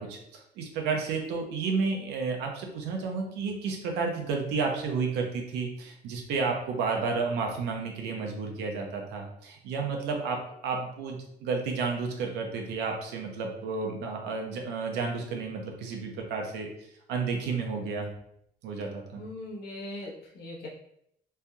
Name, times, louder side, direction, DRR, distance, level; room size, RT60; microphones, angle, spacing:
voice 1, 0.0-10.4 10.6-16.7 17.1-18.1 18.6-19.2, right 4 dB, 90° right, 1 dB, 0.7 m, -31 dB
voice 2, 19.2-20.7, left 1 dB, 70° left, -4 dB, 1.0 m, -40 dB
3.3 x 2.7 x 2.3 m, 0.72 s
cardioid pair, 110°, 17 cm